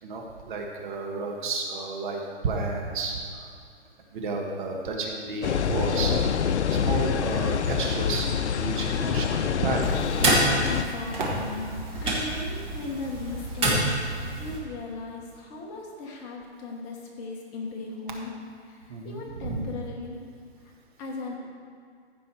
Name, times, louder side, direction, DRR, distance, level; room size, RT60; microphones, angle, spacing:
voice 1, 0.0-3.5 4.1-6.3 6.7-10.1 18.9-19.7, right 3 dB, 45° right, 0 dB, 1.6 m, -31 dB
sound 1, 5.4-10.8, left 8 dB, 85° left, 0.6 m, -26 dB
sound 2, 9.8-14.6, right 1 dB, 15° right, 1.9 m, -27 dB
voice 2, 10.6-11.7 12.0-13.9 14.4-18.3 18.7-20.2 20.6-20.7 21.0-21.4, left 3 dB, 25° left, -1 dB, 1.3 m, -37 dB
15.0 x 5.4 x 4.6 m, 2.4 s
hypercardioid pair, 145°, 34 cm